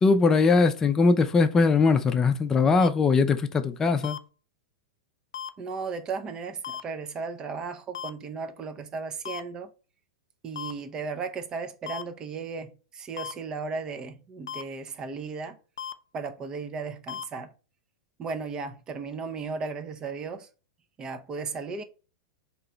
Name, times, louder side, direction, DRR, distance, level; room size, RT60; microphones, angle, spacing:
voice 1, 0.0-4.2, left 4 dB, 20° left, 0.5 m, -21 dB
sound 1, 2.8-2.9 4.0-4.2 5.3-5.5 6.6-6.8 7.9-8.1 9.3-9.4 10.6-10.7 11.9-12.0 13.2-13.3 14.5-14.6 15.8-15.9 17.1-17.2, left 8 dB, 75° left, 0.4 m, -35 dB
voice 2, 5.6-9.7 10.4-15.6 16.1-17.5 18.2-20.5 21.0-21.8, right 4 dB, 30° right, 0.6 m, -35 dB
3.8 x 2.9 x 3.4 m
hypercardioid pair, 100°, 3 cm